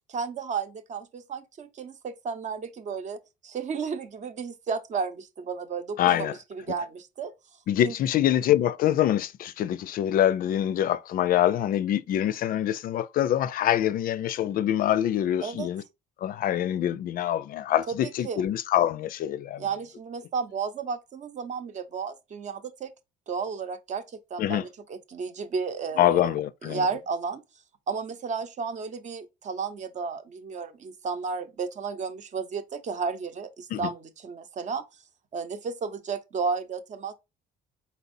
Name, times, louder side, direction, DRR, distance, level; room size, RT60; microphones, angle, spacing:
voice 1, 0.1-7.3 7.8-7.9 15.4-15.7 17.9-18.4 19.6-22.9 23.3-24.0 24.3-26.3 26.6-27.4 27.9-34.8 35.3-37.1, right 5 dB, 45° right, 0.8 m, -33 dB
voice 2, 6.0-6.3 7.7-15.8 16.2-19.6 24.4-24.6 26.0-26.8 33.7-33.8, left 11 dB, 60° left, 0.4 m, -25 dB
4.3 x 4.1 x 2.6 m
cardioid pair, 110°, 17 cm